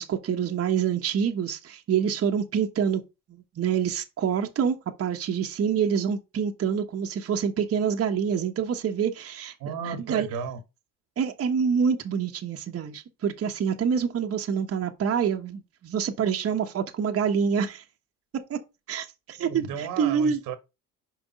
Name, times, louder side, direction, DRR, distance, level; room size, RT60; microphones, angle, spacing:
voice 1, 0.0-3.0 3.6-9.5 9.8-10.3 11.2-17.8 18.5-18.6 18.9-20.4, right 7 dB, 40° right, 1.2 m, -26 dB
voice 2, 9.6-10.6 19.4-20.6, right 7 dB, 70° right, 1.4 m, -34 dB
6.1 x 5.0 x 5.3 m
supercardioid pair, 95°, 35 cm